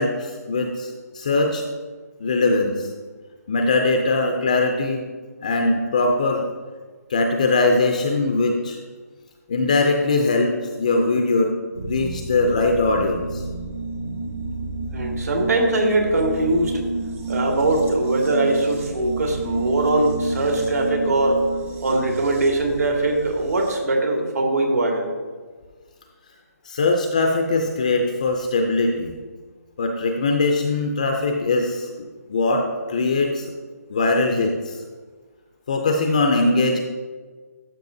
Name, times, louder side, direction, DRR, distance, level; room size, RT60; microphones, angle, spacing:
voice 1, 0.0-1.6 2.2-2.9 3.5-5.1 5.4-6.5 7.1-8.8 9.5-11.5 11.8-13.4 26.7-29.1 29.8-31.9 32.3-33.5 33.9-34.8 35.7-36.8, left 3 dB, 25° left, 3 dB, 0.4 m, -21 dB
sound 1, 11.7-23.8, right 3 dB, 55° right, 1.6 m, -30 dB
voice 2, 14.9-16.8 17.3-21.4 21.8-25.1, right 2 dB, 70° right, 1 dB, 1.8 m, -21 dB
12.0 x 5.7 x 2.7 m, 1.4 s
hypercardioid pair, 175°, 9 cm